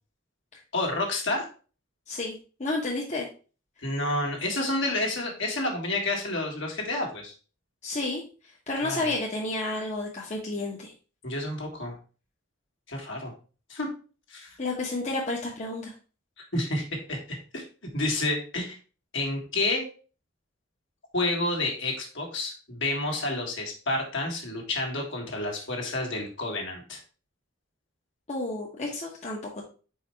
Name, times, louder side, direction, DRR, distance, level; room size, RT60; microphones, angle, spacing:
voice 1, 0.7-1.5 3.8-7.3 8.8-9.1 11.2-12.0 12.9-13.3 13.7-13.9 14.3-14.6 16.5-17.6 17.9-18.8 19.1-19.8 21.1-27.0, left 2 dB, 65° left, 1 dB, 1.8 m, -29 dB
voice 2, 2.1-3.3 7.8-8.2 8.7-10.9 14.6-15.9 28.3-29.7, left 2 dB, 35° left, -2 dB, 1.0 m, -31 dB
4.8 x 4.4 x 4.4 m, 0.37 s
head